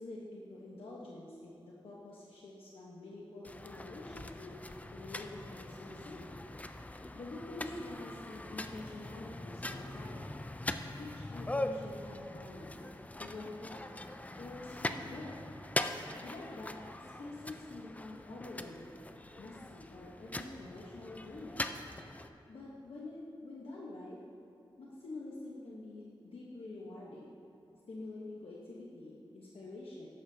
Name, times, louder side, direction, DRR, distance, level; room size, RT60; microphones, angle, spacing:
voice 1, 0.0-4.6 4.9-6.2 7.1-10.3 11.0-12.8 13.2-13.9 14.4-15.5 16.2-19.0 19.4-21.7 22.5-24.2 24.8-27.4 27.9-30.1, left 2 dB, 85° left, -5 dB, 1.1 m, -47 dB
sound 1, 3.4-22.3, left 1 dB, 15° left, 0.4 m, -42 dB
13.5 x 10.5 x 2.8 m, 2.7 s
wide cardioid pair, 95°, 9 cm